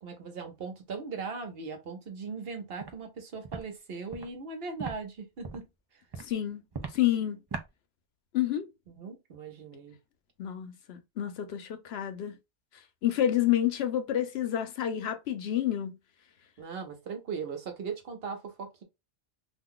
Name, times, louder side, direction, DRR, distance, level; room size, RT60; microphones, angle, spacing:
voice 1, 0.0-6.0 8.9-10.0 16.6-18.8, right 5 dB, 75° right, 1.1 m, -39 dB
Walk footsteps, 2.8-3.0 3.4-3.6 4.1-4.3 4.8-4.9 5.4-5.7 6.1-6.3 6.7-7.0 7.5-7.7, right 5 dB, 40° right, 0.4 m, -37 dB
voice 2, 6.2-6.6 6.9-7.4 8.3-8.7 10.4-12.4 13.0-16.0, left 11 dB, 85° left, 0.9 m, -29 dB
2.5 x 2.3 x 3.6 m
omnidirectional pair, 1.0 m